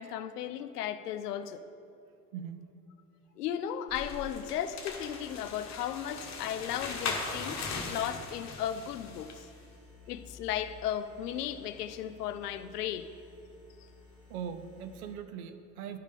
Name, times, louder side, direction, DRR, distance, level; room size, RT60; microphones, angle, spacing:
voice 1, 0.0-1.6 3.4-9.5 10.1-13.1, left 10 dB, 70° left, 12 dB, 0.6 m, -35 dB
voice 2, 2.3-2.7 14.3-16.0, right 7 dB, 60° right, 9 dB, 0.6 m, -40 dB
sound 1, 3.9-9.4, left 4 dB, 35° left, 1.2 m, -39 dB
sound 2, 4.8-15.1, left 3 dB, 85° right, 1.7 m, -56 dB
11.0 x 5.1 x 5.2 m, 2.7 s
figure-of-eight pair, 70°, 50 cm